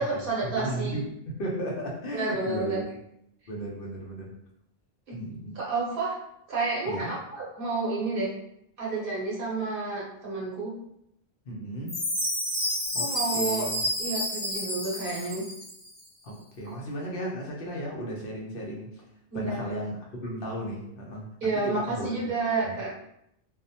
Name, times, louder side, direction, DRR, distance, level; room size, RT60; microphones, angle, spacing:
voice 1, 0.0-1.0 2.1-2.8 5.1-5.2 5.5-6.1 6.5-8.3 8.8-10.7 13.0-13.7 14.0-15.4 19.3-19.7 21.4-22.9, right 3 dB, 60° right, -6 dB, 0.9 m, -30 dB
voice 2, 0.5-2.8 3.5-4.3 5.1-5.6 6.9-7.1 11.5-12.0 12.9-13.8 16.2-19.0 19.3-21.3 21.6-22.1 22.6-22.7, right 1 dB, 65° left, -2 dB, 0.7 m, -35 dB
Chime, 11.9-15.9, left 1 dB, 35° left, 0.9 m, -30 dB
2.2 x 2.1 x 2.7 m, 0.77 s
omnidirectional pair, 1.1 m